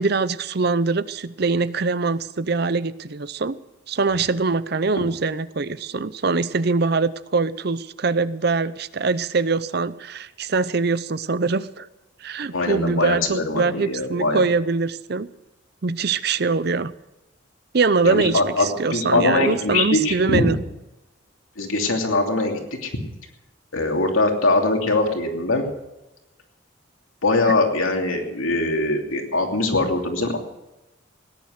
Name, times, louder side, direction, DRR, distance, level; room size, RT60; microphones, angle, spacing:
voice 1, 0.0-3.6 3.9-11.9 12.2-15.3 15.8-16.9 17.7-20.6, right 4 dB, 50° right, 16 dB, 0.6 m, -23 dB
voice 2, 12.5-14.4 18.0-20.5 21.6-22.9 23.7-25.7 27.2-30.4, left 2 dB, 90° left, 2 dB, 2.9 m, -22 dB
17.5 x 10.5 x 6.5 m, 0.97 s
head